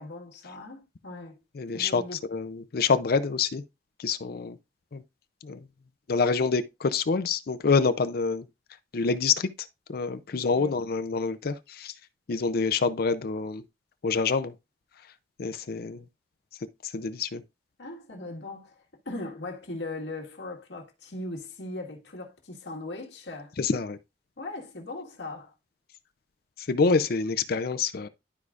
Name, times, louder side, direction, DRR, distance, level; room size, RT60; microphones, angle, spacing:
voice 1, 0.0-1.4 1.7-2.2 10.3-10.8 17.8-18.7 19.1-23.5 24.4-25.5, left 2 dB, 85° left, 1.8 m, -39 dB
voice 2, 1.6-2.0 2.3-3.6 4.0-4.6 4.9-5.0 5.4-5.6 6.1-8.5 8.9-11.9 12.3-13.6 14.0-14.5 15.4-16.0 16.8-17.4 23.6-24.0 26.6-28.1, left 4 dB, 60° left, 0.5 m, -27 dB
12.0 x 4.8 x 2.4 m
head